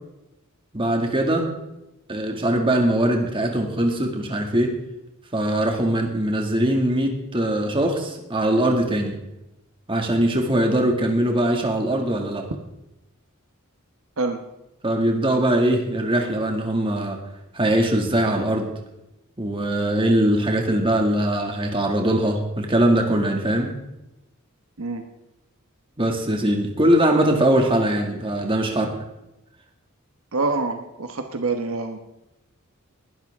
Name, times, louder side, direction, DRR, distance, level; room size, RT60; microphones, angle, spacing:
voice 1, 0.7-1.5 2.1-4.8 5.3-9.2 9.9-12.5 14.8-17.2 17.5-18.7 19.4-23.7 26.0-29.0, right 1 dB, 25° right, 2 dB, 2.1 m, -21 dB
voice 2, 30.3-32.0, right 3 dB, 70° right, 6 dB, 1.1 m, -26 dB
20.0 x 12.0 x 3.6 m, 0.92 s
head